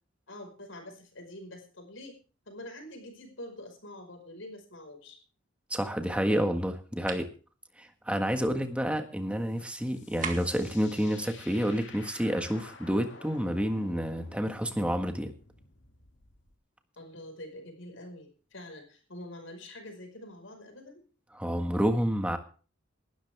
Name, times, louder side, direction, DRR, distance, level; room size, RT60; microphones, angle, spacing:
voice 1, 0.3-2.2 2.4-5.2 17.0-21.0, left 1 dB, 80° left, 5 dB, 5.2 m, -46 dB
voice 2, 5.7-7.3 7.8-15.3 21.3-22.4, equal, 5° right, 6 dB, 1.6 m, -29 dB
sound 1, 7.1-7.3 10.2-10.7, right 6 dB, 40° right, 2.0 m, -37 dB
sound 2, 9.4-16.6, left 4 dB, 65° left, 2.4 m, -52 dB
19.0 x 12.5 x 3.5 m, 0.38 s
head